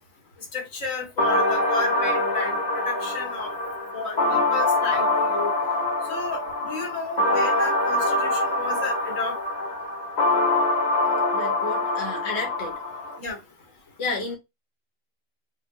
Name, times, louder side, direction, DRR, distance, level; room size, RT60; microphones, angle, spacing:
voice 1, 0.5-2.6 2.8-3.5 3.9-5.5 6.1-9.4 13.2-13.4, left 4 dB, 80° left, 1.6 m, -32 dB
sound 1, 1.2-13.2, left 2 dB, 35° left, 1.0 m, -24 dB
voice 2, 11.3-12.8 14.0-14.4, left 3 dB, 55° left, 1.2 m, -31 dB
4.0 x 3.1 x 2.5 m
omnidirectional pair, 1.3 m